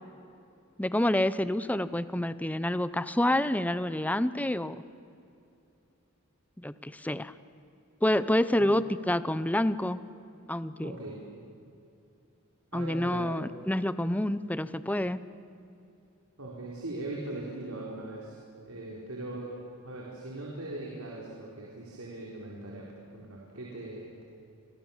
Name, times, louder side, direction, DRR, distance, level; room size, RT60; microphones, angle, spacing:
voice 1, 0.8-4.8 6.6-7.3 8.0-10.0 10.5-11.0 12.7-15.2, left 1 dB, 5° left, 14 dB, 0.7 m, -28 dB
voice 2, 10.8-11.3 12.7-13.3 16.4-18.4 18.6-24.2, right 2 dB, 75° right, -3 dB, 4.4 m, -40 dB
29.5 x 25.0 x 7.3 m, 2.7 s
head